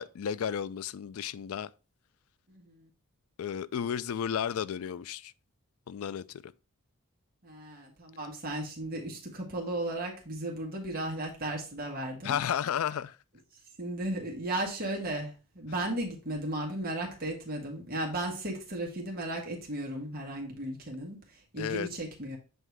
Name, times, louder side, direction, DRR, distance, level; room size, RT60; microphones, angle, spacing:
voice 1, 0.0-1.7 3.4-5.3 5.9-6.5 12.2-13.2 21.6-21.9, left 8 dB, 75° left, 0.3 m, -33 dB
voice 2, 2.5-2.9 7.4-12.4 13.8-22.4, right 1 dB, 40° right, 1.5 m, -35 dB
7.8 x 2.7 x 4.6 m
head